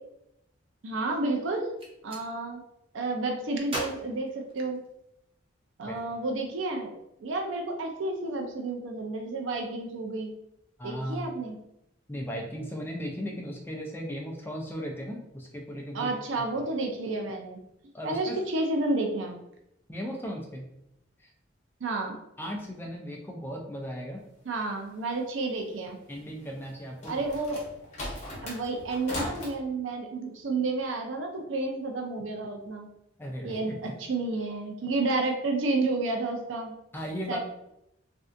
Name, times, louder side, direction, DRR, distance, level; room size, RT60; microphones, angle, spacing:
voice 1, 0.8-1.6 2.0-2.6 2.9-4.8 5.8-6.9 7.2-10.3 10.8-11.6 15.9-17.6 18.0-19.4 21.8-22.2 24.5-26.0 27.1-27.6 28.4-32.9 33.4-36.7 37.3-37.4, right 2 dB, 80° right, 2 dB, 0.5 m, -30 dB
Gunshot gunfire, 1.8-2.3 3.7-5.1, right 1 dB, 30° right, 0.7 m, -38 dB
voice 2, 10.8-11.2 12.1-16.1 17.9-18.4 19.9-20.7 21.2-21.3 22.4-24.2 26.1-27.2 33.2-33.9 36.9-37.4, equal, 10° left, 0 dB, 0.5 m, -36 dB
sound 1, 26.6-29.5, left 1 dB, 35° left, 0.9 m, -38 dB
3.3 x 2.6 x 2.5 m, 0.82 s
head